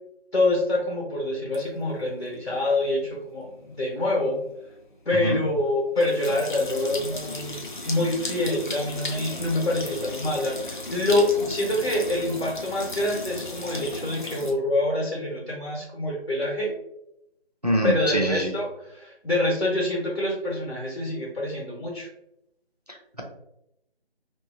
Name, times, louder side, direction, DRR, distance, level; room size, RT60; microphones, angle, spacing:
voice 1, 0.3-3.5 3.8-4.4 5.0-16.7 17.8-22.1, left 1 dB, 70° left, -3 dB, 1.1 m, -26 dB
sound 1, 1.5-14.5, left 2 dB, 50° left, 0.5 m, -36 dB
voice 2, 5.1-5.4 17.6-18.5 22.9-23.2, right 1 dB, 40° right, 2 dB, 0.4 m, -25 dB
2.7 x 2.6 x 2.3 m, 0.80 s
figure-of-eight pair, 175°, 32 cm